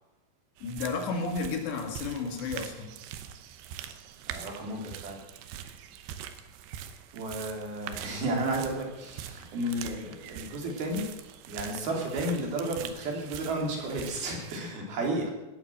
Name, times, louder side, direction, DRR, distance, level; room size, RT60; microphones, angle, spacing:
voice 1, 0.6-3.0, left 4 dB, 90° left, 3 dB, 4.4 m, -32 dB
sound 1, 0.6-14.6, right 10 dB, 90° right, 3.2 m, -43 dB
voice 2, 4.3-5.2 7.1-11.0 11.5-15.3, right 1 dB, 65° right, 0 dB, 4.8 m, -32 dB
19.0 x 9.0 x 7.6 m, 0.98 s
omnidirectional pair, 4.8 m